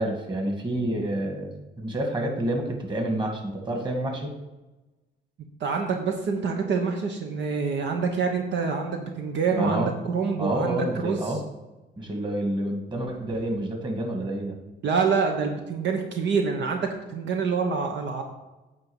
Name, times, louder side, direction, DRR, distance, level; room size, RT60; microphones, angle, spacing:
voice 1, 0.0-1.5 1.8-4.3 9.5-9.9 10.4-11.4 12.0-14.6, right 1 dB, 25° right, 2 dB, 2.1 m, -28 dB
voice 2, 5.6-11.2 14.8-18.2, right 5 dB, 65° right, 3 dB, 1.0 m, -26 dB
8.9 x 4.1 x 7.2 m, 1.1 s
cardioid pair, 90°, 20 cm